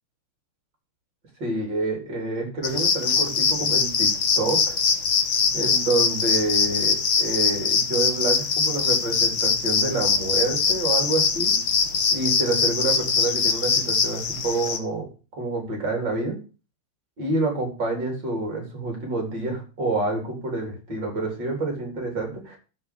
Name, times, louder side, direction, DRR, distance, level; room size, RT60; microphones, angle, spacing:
voice 1, 1.4-4.1 4.4-4.8 5.5-11.6 12.1-15.1 15.4-16.4 17.2-22.6, right 2 dB, 60° right, 2 dB, 5.0 m, -27 dB
sound 1, 2.6-14.8, left 6 dB, 70° left, 2.1 m, -22 dB
12.0 x 4.9 x 8.4 m, 0.34 s
omnidirectional pair, 2.2 m